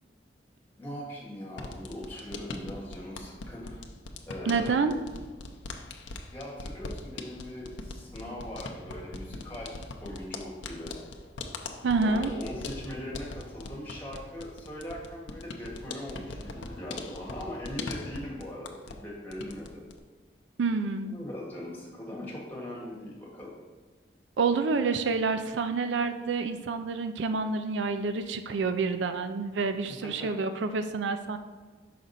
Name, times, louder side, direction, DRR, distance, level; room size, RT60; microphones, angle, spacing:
voice 1, 0.8-3.8 4.3-4.8 6.3-10.9 12.0-19.8 21.1-23.5 30.0-30.7, left 1 dB, 10° left, -5 dB, 1.7 m, -40 dB
sound 1, 1.5-19.0 19.3-20.0, left 3 dB, 90° left, 0.6 m, -41 dB
voice 2, 4.5-4.9 11.8-12.3 20.6-21.2 24.4-31.4, right 4 dB, 80° right, 9 dB, 0.4 m, -28 dB
5.9 x 5.0 x 4.0 m, 1.4 s
head